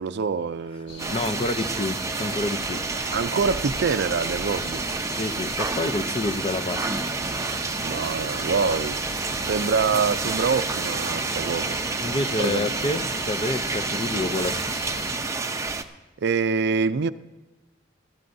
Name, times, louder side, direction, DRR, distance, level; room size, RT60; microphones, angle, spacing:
voice 1, 0.0-1.2 3.1-4.8 7.8-9.0 9.4-11.8 12.4-12.7 16.2-17.1, right 5 dB, 60° right, 0.4 m, -25 dB
sound 1, 0.9-15.1, left 1 dB, 60° left, 2.1 m, -38 dB
sound 2, 1.0-15.8, right 3 dB, 15° right, 0.6 m, -29 dB
voice 2, 1.1-2.8 5.1-6.9 12.0-14.6, left 2 dB, 30° left, 0.6 m, -28 dB
20.0 x 13.5 x 2.7 m
head